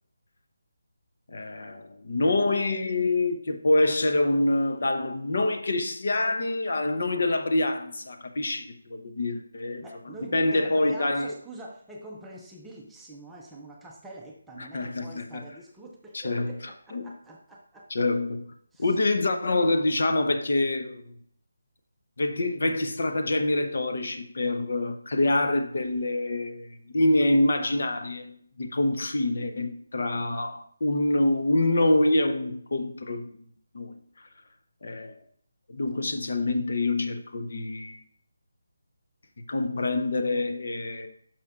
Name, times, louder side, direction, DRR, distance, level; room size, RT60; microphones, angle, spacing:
voice 1, 1.3-9.8 10.3-11.3 14.7-15.4 16.1-16.5 16.9-17.1 17.9-18.5 18.8-21.1 22.2-33.3 33.7-34.0 34.8-35.2 35.7-38.0 39.5-41.1, left 2 dB, 55° left, 0.8 m, -26 dB
voice 2, 9.8-17.9 18.7-19.0, right 2 dB, 5° right, 0.5 m, -45 dB
11.0 x 5.9 x 2.4 m
figure-of-eight pair, 170°, 0 cm